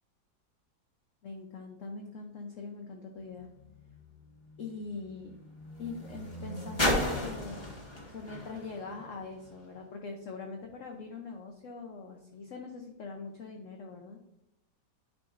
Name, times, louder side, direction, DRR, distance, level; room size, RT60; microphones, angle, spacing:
voice 1, 1.2-3.5 4.6-5.4 5.8-7.6 8.0-14.2, left 4 dB, 60° left, 2 dB, 0.9 m, -42 dB
sound 1, 3.3-9.8 10.6-10.7, left 1 dB, 15° left, 1.2 m, -36 dB
9.7 x 4.9 x 2.5 m, 0.87 s
omnidirectional pair, 2.0 m